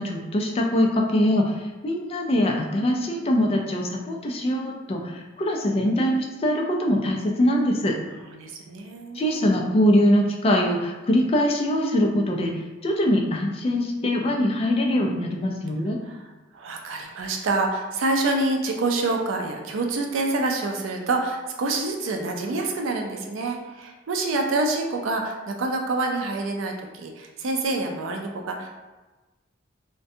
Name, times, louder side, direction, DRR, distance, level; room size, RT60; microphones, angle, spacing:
voice 1, 0.0-7.9 9.1-12.5 12.8-16.0, left 1 dB, 30° left, 1 dB, 0.3 m, -23 dB
voice 2, 8.3-9.5 16.0-16.2 16.5-28.7, right 2 dB, 80° right, 2 dB, 0.4 m, -27 dB
2.5 x 2.2 x 2.6 m, 1.2 s
head